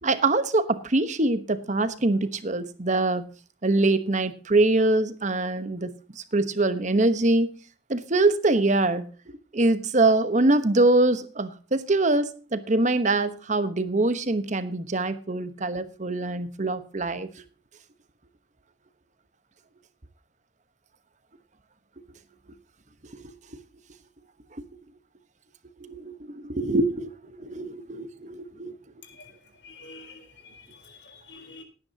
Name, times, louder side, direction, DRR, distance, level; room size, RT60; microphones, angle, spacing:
voice 1, 0.0-3.3 3.6-7.5 7.9-17.3 23.2-23.3 25.8-28.8, right 2 dB, 40° right, 12 dB, 1.1 m, -24 dB
voice 2, 29.0-29.3 29.6-31.6, left 3 dB, 75° left, 5 dB, 3.9 m, -47 dB
18.5 x 9.7 x 2.8 m, 0.36 s
head